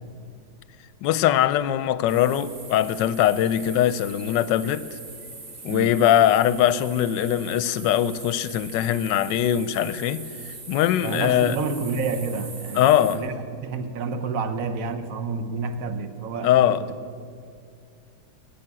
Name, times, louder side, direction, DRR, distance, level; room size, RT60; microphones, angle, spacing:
voice 1, 1.0-4.9 5.6-11.6 12.7-13.2 16.4-16.8, left 11 dB, 75° left, 1.2 m, -21 dB
sound 1, 2.1-13.2, right 3 dB, 35° right, 1.6 m, -41 dB
voice 2, 11.0-16.9, right 4 dB, 55° right, 1.1 m, -29 dB
12.0 x 9.0 x 9.7 m
omnidirectional pair, 2.1 m